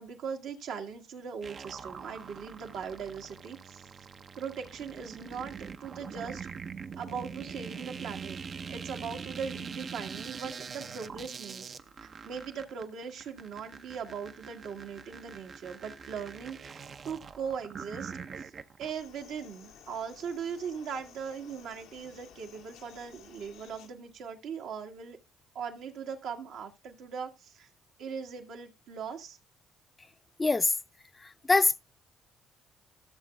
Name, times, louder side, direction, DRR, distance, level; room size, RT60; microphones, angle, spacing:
voice 1, 0.0-3.9 4.4-6.5 7.0-8.4 8.7-11.7 12.0-18.1 18.4-18.5 18.8-25.2 25.6-27.7 28.0-29.4, right 6 dB, 75° right, 1.7 m, -39 dB
sound 1, 1.4-18.9, right 6 dB, 50° right, 0.7 m, -43 dB
sound 2, 18.8-23.9, left 8 dB, 85° left, 1.4 m, -54 dB
voice 2, 30.4-30.7 31.2-31.8, left 3 dB, 25° left, 0.6 m, -24 dB
15.0 x 7.0 x 2.3 m
supercardioid pair, 65°, 0 cm